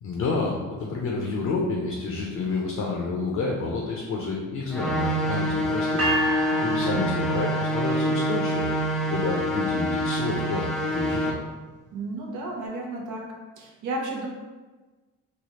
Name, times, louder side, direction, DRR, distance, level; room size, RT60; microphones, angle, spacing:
voice 1, 0.0-6.1 6.6-8.7 9.1-11.3, left 3 dB, 65° left, -1 dB, 0.6 m, -29 dB
sound 1, 4.7-11.3, equal, ahead, 0.4 m, -26 dB
sound 2, 6.0-8.1, right 1 dB, 60° right, 1.2 m, -30 dB
voice 2, 11.9-13.2 13.6-14.3, right 2 dB, 80° right, -2 dB, 0.7 m, -33 dB
3.2 x 2.3 x 2.8 m, 1.3 s
cardioid pair, 90°, 30 cm